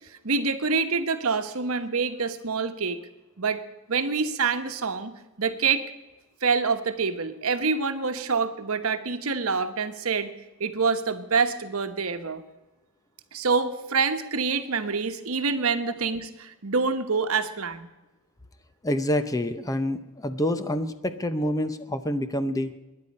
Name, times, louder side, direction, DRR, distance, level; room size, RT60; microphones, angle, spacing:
voice 1, 0.2-3.0 3.4-3.6 3.9-5.9 6.4-10.3 10.6-12.4 13.3-17.9, right 5 dB, 70° right, 8 dB, 1.1 m, -26 dB
voice 2, 18.8-22.7, left 1 dB, 15° left, 10 dB, 0.7 m, -27 dB
21.5 x 10.0 x 5.4 m, 1.1 s
head